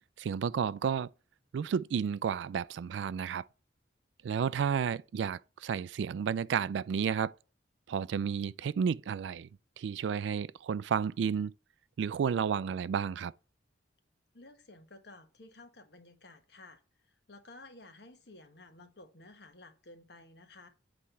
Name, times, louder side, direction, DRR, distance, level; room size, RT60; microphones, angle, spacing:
voice 1, 0.2-1.1 1.5-3.4 4.2-7.3 7.9-9.5 9.8-11.5 12.0-13.3, right 7 dB, 75° right, 0.3 m, -32 dB
voice 2, 14.3-20.7, left 2 dB, 60° left, 1.2 m, -54 dB
8.4 x 4.4 x 5.5 m
head